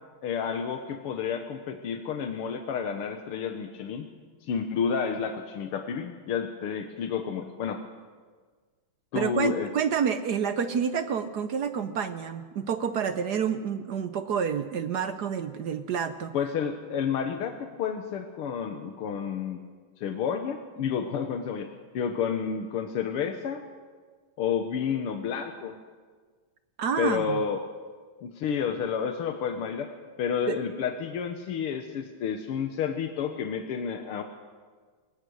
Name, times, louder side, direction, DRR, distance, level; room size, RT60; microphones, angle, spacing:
voice 1, 0.2-4.1 4.4-7.8 9.1-9.7 16.3-19.6 20.0-21.7 21.9-23.6 24.4-25.7 27.0-27.7 28.2-34.2, left 7 dB, 90° left, 6 dB, 2.1 m, -30 dB
voice 2, 9.1-16.3 26.8-27.4 30.5-30.6, right 7 dB, 65° right, 10 dB, 1.1 m, -28 dB
22.0 x 20.0 x 6.4 m, 1.5 s
omnidirectional pair, 2.4 m